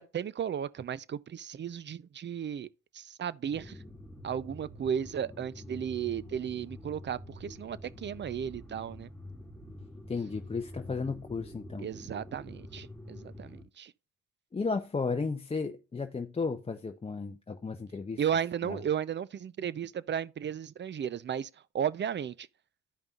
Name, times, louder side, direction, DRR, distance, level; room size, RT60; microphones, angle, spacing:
voice 1, 0.0-2.7 2.9-3.8 4.2-9.1 11.8-13.9 18.2-21.5 21.7-22.5, right 8 dB, 35° right, 0.5 m, -34 dB
sound 1, 3.5-13.6, left 1 dB, ahead, 2.8 m, -47 dB
voice 2, 10.1-11.9 14.5-18.2 18.7-18.8, left 4 dB, 20° left, 0.6 m, -34 dB
13.5 x 5.3 x 2.4 m
cardioid pair, 90°, 30 cm